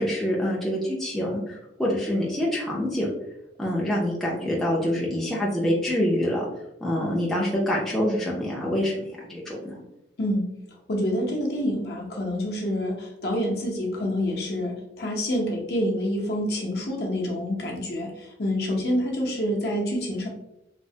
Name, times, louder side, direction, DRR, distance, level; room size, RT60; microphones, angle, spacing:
voice 1, 0.0-3.1 3.6-6.4 6.8-9.8, equal, ahead, -5 dB, 0.4 m, -26 dB
voice 2, 10.9-20.3, equal, 55° left, -1 dB, 0.7 m, -27 dB
3.1 x 2.0 x 2.6 m, 0.85 s
head